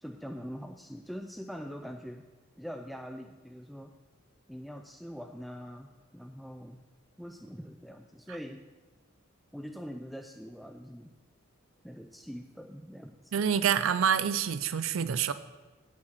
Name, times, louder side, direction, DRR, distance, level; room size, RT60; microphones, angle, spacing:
voice 1, 0.0-2.3 2.6-3.9 4.5-6.8 7.2-8.6 9.5-11.1 11.8-13.3, equal, ahead, 4 dB, 0.4 m, -43 dB
voice 2, 13.3-15.3, right 8 dB, 85° right, 13 dB, 0.4 m, -27 dB
8.9 x 8.7 x 5.8 m, 1.3 s
head